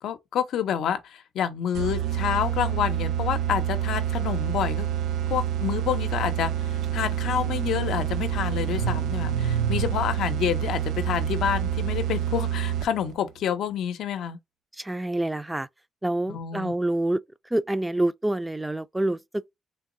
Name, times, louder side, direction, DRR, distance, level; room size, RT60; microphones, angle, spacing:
voice 1, 0.0-4.9 5.3-14.4 16.3-16.7, left 9 dB, 75° left, 0.5 m, -28 dB
sound 1, 1.7-13.1, right 10 dB, 85° right, 0.4 m, -28 dB
Car / Engine starting, 6.8-6.9 7.2-12.5, right 5 dB, 70° right, 1.1 m, -33 dB
voice 2, 14.8-15.7 16.0-17.2 17.5-19.5, right 1 dB, 10° right, 0.3 m, -27 dB
3.4 x 2.9 x 2.6 m
cardioid pair, 90°, 0 cm